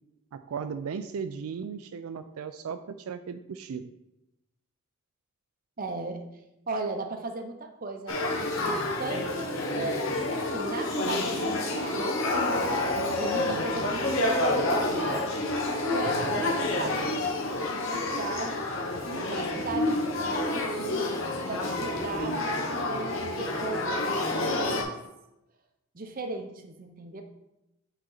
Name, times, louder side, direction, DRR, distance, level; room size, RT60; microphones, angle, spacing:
voice 1, 0.3-3.9 13.4-13.6, right 6 dB, 90° right, 10 dB, 0.4 m, -36 dB
voice 2, 5.8-6.2 6.7-12.2 13.2-15.3 15.9-17.3 17.6-18.7 19.1-21.2 21.5-22.4 22.8-25.0 25.9-27.2, right 3 dB, 40° right, 5 dB, 0.7 m, -37 dB
Male speech man speaking / Child speech kid speaking / Conversation, 8.1-24.8, left 2 dB, 65° left, 1.1 m, -28 dB
7.9 x 4.1 x 3.9 m, 0.90 s
head